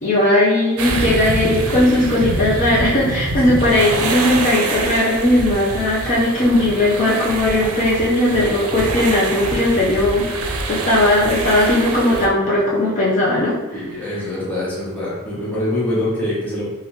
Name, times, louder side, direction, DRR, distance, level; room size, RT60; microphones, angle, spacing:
voice 1, 0.0-13.6, left 1 dB, 35° left, -7 dB, 0.5 m, -17 dB
sound 1, 0.8-12.3, right 2 dB, 85° right, 0.5 m, -25 dB
voice 2, 13.7-16.7, left 1 dB, 10° left, -8 dB, 0.9 m, -24 dB
3.4 x 2.4 x 2.8 m, 1.0 s
head